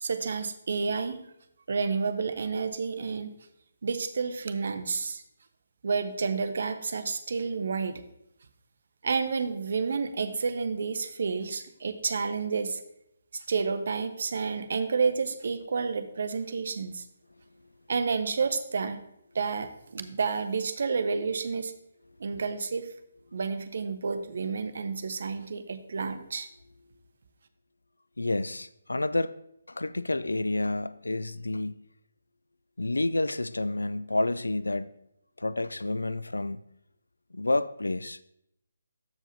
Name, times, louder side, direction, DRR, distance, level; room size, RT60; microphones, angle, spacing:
voice 1, 0.0-1.3 1.7-3.3 3.8-5.2 5.8-8.0 9.0-12.8 13.3-17.1 17.9-19.0 19.3-21.7 22.2-22.9 23.3-26.5, right 5 dB, 50° right, 0.7 m, -30 dB
voice 2, 28.2-29.4 29.7-31.8 32.8-35.0 35.4-36.6 37.3-38.2, left 2 dB, 70° left, 0.3 m, -29 dB
13.5 x 4.8 x 2.8 m
figure-of-eight pair, 145°, 0 cm